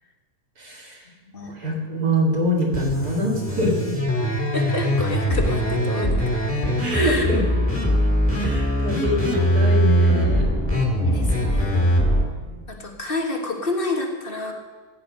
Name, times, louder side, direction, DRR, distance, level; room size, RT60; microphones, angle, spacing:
voice 1, 0.6-1.0 1.5-3.9 4.2-4.3 6.8-7.4 8.4-10.5 12.4-12.6, left 1 dB, 80° right, -4 dB, 2.7 m, -24 dB
voice 2, 1.2-1.5 4.5-6.2 6.9-7.2 11.0-11.9 12.7-14.5, left 2 dB, 35° left, 2 dB, 1.7 m, -29 dB
sound 1, 2.7-12.2, equal, 10° left, 2.0 m, -21 dB
16.0 x 8.9 x 5.2 m, 1.4 s
omnidirectional pair, 1.6 m